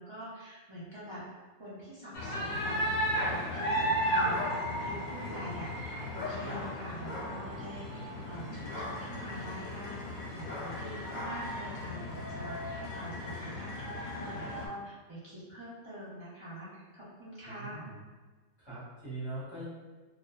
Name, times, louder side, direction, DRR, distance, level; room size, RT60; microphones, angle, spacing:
voice 1, 0.0-2.8 3.2-17.8, equal, 40° right, -10 dB, 0.4 m, -45 dB
sound 1, 2.1-14.7, equal, 90° left, 1.1 m, -35 dB
voice 2, 17.4-18.0 18.6-19.6, right 2 dB, 20° left, -12 dB, 1.1 m, -42 dB
2.5 x 2.3 x 2.2 m, 1.3 s
omnidirectional pair, 1.3 m